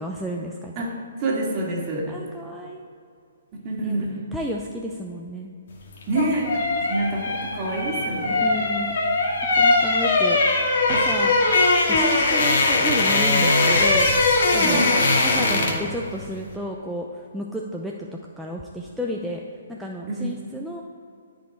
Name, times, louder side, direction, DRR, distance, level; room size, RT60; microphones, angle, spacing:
voice 1, 0.0-0.7 2.1-2.8 3.8-4.0 4.3-5.6 8.4-8.9 9.6-10.4 10.9-11.3 11.9-14.1 14.5-14.9 15.2-17.1 17.3-17.9 18.4-19.4 19.7-20.8, equal, ahead, -2 dB, 0.6 m, -31 dB
voice 2, 0.8-2.2 3.6-4.2 6.1-8.5 14.6-14.9 20.1-20.3, right 1 dB, 30° right, -3 dB, 2.3 m, -27 dB
sound 1, 5.9-15.9 16.2-16.4, left 2 dB, 55° left, 1.9 m, -20 dB
13.5 x 5.3 x 4.6 m, 2.3 s
hypercardioid pair, 150°, 0 cm